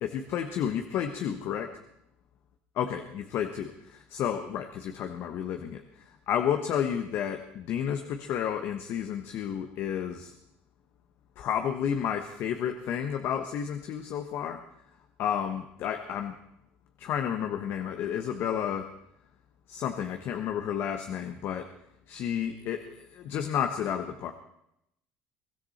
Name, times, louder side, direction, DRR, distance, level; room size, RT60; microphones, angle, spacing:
voice 1, 0.0-1.7 2.7-5.8 6.3-10.3 11.4-14.6 15.2-16.3 17.0-18.9 19.7-21.7 22.1-24.3, left 9 dB, 60° left, 6 dB, 1.3 m, -31 dB
23.0 x 13.0 x 4.3 m, 0.78 s
supercardioid pair, 90°, 4 cm